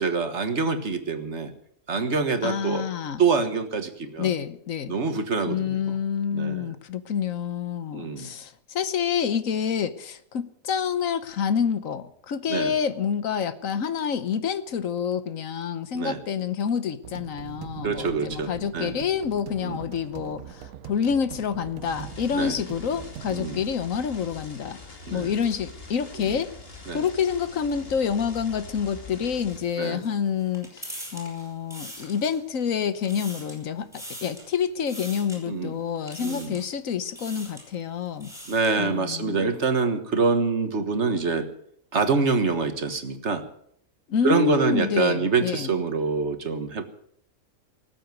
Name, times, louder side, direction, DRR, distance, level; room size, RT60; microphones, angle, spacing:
voice 1, 0.0-1.5 1.9-2.9 3.2-4.3 4.9-6.0 6.3-6.7 7.9-8.3 12.5-12.7 15.9-16.2 17.8-19.0 19.6-19.8 22.3-22.6 23.3-23.6 25.1-25.3 26.2-26.4 26.9-27.0 29.8-30.0 35.5-35.8 36.2-36.6 38.5-41.5 41.9-43.5 44.2-46.8, right 4 dB, 50° right, 8 dB, 1.7 m, -25 dB
voice 2, 2.4-3.2 4.2-4.9 5.5-24.8 25.1-26.5 26.9-38.3 38.8-39.5 44.1-45.7, left 7 dB, 70° left, 13 dB, 1.3 m, -28 dB
sound 1, 17.0-23.5, right 10 dB, 85° right, 1.3 m, -42 dB
sound 2, 21.8-29.6, left 3 dB, 40° left, 2.5 m, -43 dB
sound 3, 29.5-32.6 32.9-33.6 33.9-34.5 34.9-35.4 36.1-36.7 37.1-37.7 38.1-38.8, equal, ahead, 5.5 m, -42 dB
19.5 x 8.0 x 9.3 m, 0.69 s
omnidirectional pair, 1.5 m